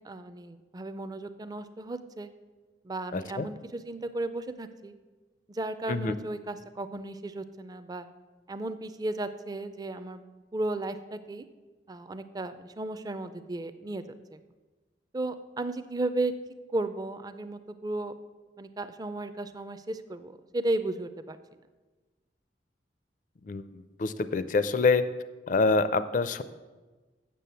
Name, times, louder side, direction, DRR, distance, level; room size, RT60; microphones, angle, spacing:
voice 1, 0.0-2.3 2.8-4.9 5.5-8.1 8.5-10.2 10.5-11.4 11.9-14.0 15.1-16.3 16.7-18.2 18.6-21.4, right 2 dB, 20° right, 11 dB, 0.4 m, -34 dB
voice 2, 3.1-3.4 5.9-6.1 23.5-23.7 24.0-25.0 25.5-26.4, left 3 dB, 45° left, 13 dB, 0.4 m, -25 dB
7.6 x 6.9 x 6.8 m, 1.3 s
head